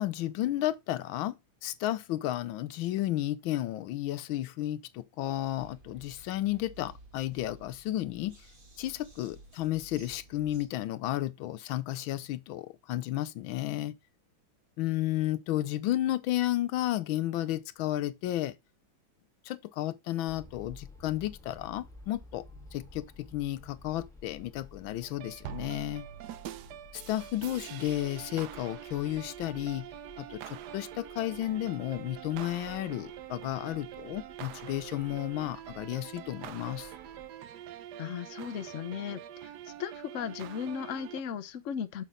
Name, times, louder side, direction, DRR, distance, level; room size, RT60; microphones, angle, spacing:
voice 1, 0.0-8.4 8.8-14.0 14.8-18.6 19.4-22.5 22.7-26.1 26.9-29.9 30.2-36.9, left 14 dB, 80° left, 1.4 m, -33 dB
sound 1, 5.6-10.7, right 2 dB, 30° right, 1.4 m, -54 dB
sound 2, 20.3-37.3, left 3 dB, ahead, 1.3 m, -54 dB
sound 3, 25.0-41.2, right 11 dB, 70° right, 1.1 m, -44 dB
voice 2, 38.0-42.0, left 8 dB, 60° left, 0.8 m, -37 dB
7.1 x 5.9 x 3.8 m
omnidirectional pair, 2.2 m